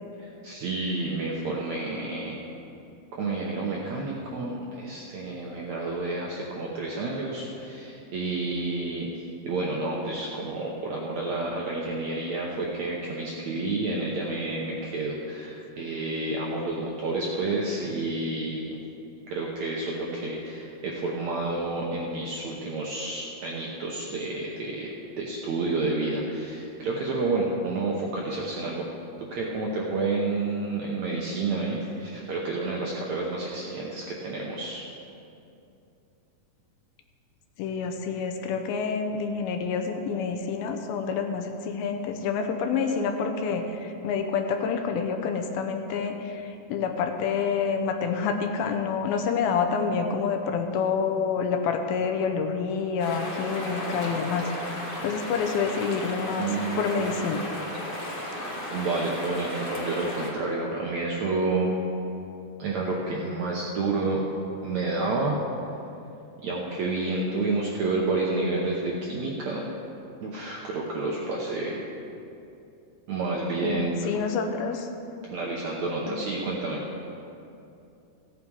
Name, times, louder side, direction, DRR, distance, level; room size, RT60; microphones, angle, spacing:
voice 1, 0.2-2.4 3.1-18.8 19.3-24.9 25.2-28.9 29.3-34.8 56.4-57.1 58.3-61.7 62.6-64.2 64.6-65.4 66.4-69.6 70.2-71.8 73.1-73.9 75.3-76.8, right 3 dB, 70° right, -3 dB, 1.7 m, -30 dB
voice 2, 37.6-54.5 55.0-57.4 73.6-74.9 76.1-76.2, left 6 dB, 80° left, 5 dB, 2.5 m, -28 dB
sound 1, 53.0-60.3, left 1 dB, 45° left, 0.6 m, -34 dB
15.5 x 9.0 x 4.7 m, 2.7 s
omnidirectional pair, 4.5 m